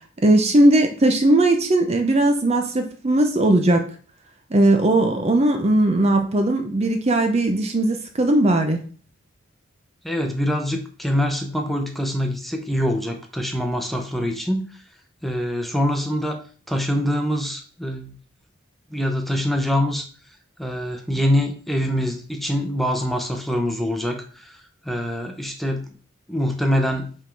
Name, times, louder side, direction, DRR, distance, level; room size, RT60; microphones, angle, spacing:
voice 1, 0.2-3.9 4.5-8.8, right 1 dB, 30° right, 5 dB, 0.6 m, -18 dB
voice 2, 10.0-14.8 15.2-16.4 16.7-18.2 18.9-20.1 20.6-25.8 26.3-27.1, equal, ahead, 4 dB, 0.8 m, -24 dB
5.3 x 3.7 x 5.1 m, 0.41 s
head